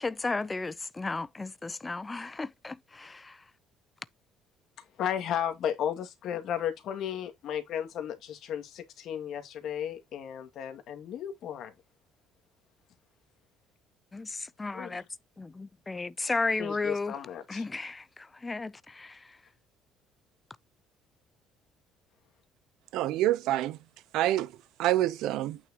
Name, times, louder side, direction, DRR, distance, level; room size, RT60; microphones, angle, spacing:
voice 1, 0.0-3.4 14.1-15.1 15.4-17.1 17.5-19.4, left 3 dB, 15° left, 0.5 m, -34 dB
voice 2, 5.0-11.7 14.7-15.0 16.6-17.6, left 9 dB, 60° left, 2.2 m, -34 dB
voice 3, 22.9-23.8 24.1-24.5 24.8-25.6, right 14 dB, 75° right, 0.7 m, -26 dB
9.0 x 6.2 x 2.9 m
cardioid pair, 120°, 0 cm